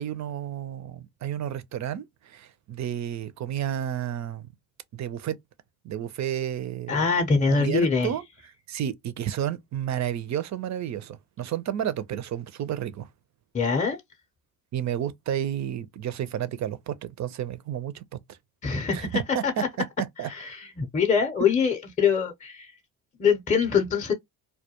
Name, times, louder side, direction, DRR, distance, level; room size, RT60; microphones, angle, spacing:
voice 1, 0.0-4.5 4.9-5.4 5.8-7.0 7.5-8.2 8.7-13.1 14.7-18.0 18.9-19.6 20.0-20.3, right 10 dB, 40° right, 0.4 m, -31 dB
voice 2, 6.9-8.1 13.5-14.0 18.6-19.7 20.3-22.7 23.2-24.1, left 5 dB, 15° left, 0.6 m, -24 dB
2.2 x 2.2 x 2.8 m
supercardioid pair, 65°, 47 cm